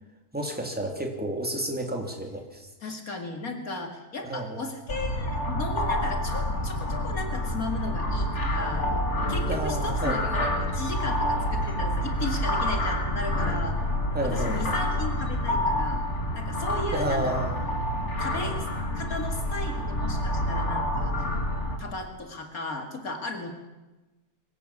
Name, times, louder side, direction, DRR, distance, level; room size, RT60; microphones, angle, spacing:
voice 1, 0.3-2.7 4.2-4.6 9.5-10.2 14.1-14.6 16.9-17.5, right 1 dB, 5° right, 2 dB, 3.3 m, -31 dB
voice 2, 2.8-8.9 9.3-13.9 14.2-16.1 16.3-17.4 18.2-18.7 18.9-21.2 21.8-23.5, left 2 dB, 65° left, 4 dB, 2.7 m, -35 dB
sound 1, 4.9-21.8, left 1 dB, 50° left, 2.9 m, -28 dB
23.5 x 14.5 x 8.6 m, 1.1 s
omnidirectional pair, 1.6 m